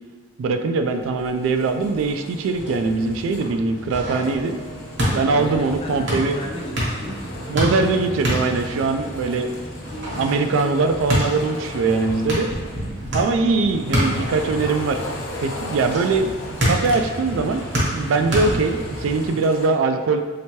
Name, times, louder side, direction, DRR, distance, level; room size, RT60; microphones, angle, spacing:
voice 1, 0.4-4.5 5.1-6.4 7.5-9.5 10.1-12.5 13.1-15.0 15.4-16.3 16.6-17.7 17.9-20.2, right 3 dB, 85° right, 7 dB, 0.3 m, -21 dB
sound 1, 0.9-19.7, left 1 dB, 80° left, 0.6 m, -38 dB
sound 2, 2.5-19.3, equal, 65° right, 1.1 m, -28 dB
sound 3, 4.2-10.9, right 1 dB, 35° right, 0.7 m, -40 dB
voice 2, 5.0-7.5, left 1 dB, 30° left, 1 dB, 0.4 m, -34 dB
3.3 x 2.8 x 3.1 m, 1.4 s
head